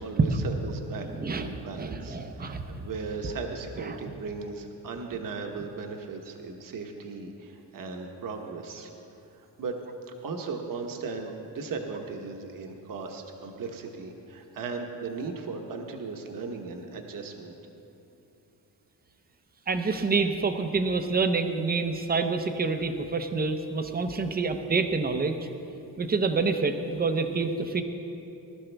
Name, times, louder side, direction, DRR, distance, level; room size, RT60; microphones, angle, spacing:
voice 1, 0.0-1.1 1.3-8.9 9.3-9.8 10.2-17.6, right 4 dB, 50° right, 3 dB, 1.1 m, -37 dB
voice 2, 1.0-1.5 1.7-2.9 3.8-4.0 19.7-25.4 26.0-27.8, right 4 dB, 20° right, 7 dB, 0.6 m, -27 dB
19.5 x 13.0 x 3.4 m, 2.9 s
wide cardioid pair, 175°, 42 cm